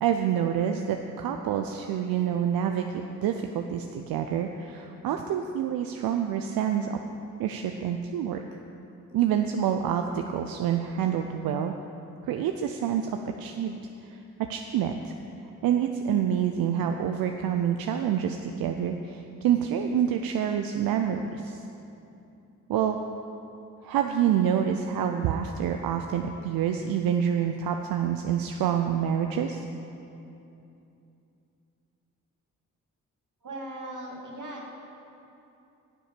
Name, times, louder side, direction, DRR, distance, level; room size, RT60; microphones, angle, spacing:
voice 1, 0.0-7.0 7.4-8.4 9.1-11.7 12.3-13.8 14.5-15.1 15.6-21.6 22.7-23.0 23.8-29.7, right 9 dB, 90° right, 5 dB, 0.5 m, -27 dB
voice 2, 33.4-34.7, right 1 dB, 60° right, -1 dB, 2.3 m, -38 dB
9.8 x 7.6 x 6.7 m, 2.8 s
supercardioid pair, 45°, 34 cm